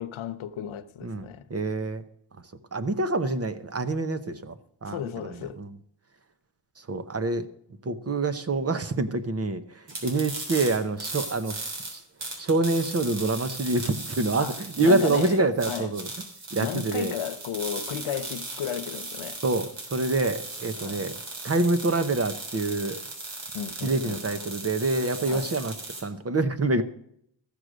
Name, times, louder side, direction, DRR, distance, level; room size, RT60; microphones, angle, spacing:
voice 1, 0.0-1.4 4.9-5.6 14.4-15.9 16.6-19.4 20.8-21.0 23.5-24.2 25.3-25.5, left 9 dB, 85° left, 0.9 m, -34 dB
voice 2, 1.0-2.0 2.7-4.6 4.8-5.0 5.6-5.7 6.9-7.4 7.8-11.6 11.9-12.0 12.4-16.1 16.5-17.1 19.4-21.1 21.4-23.0 23.8-25.7 26.0-26.8, right 2 dB, 30° right, 0.9 m, -26 dB
sound 1, 9.9-26.0, right 2 dB, 70° right, 3.4 m, -37 dB
14.0 x 6.6 x 6.2 m
wide cardioid pair, 125°, 46 cm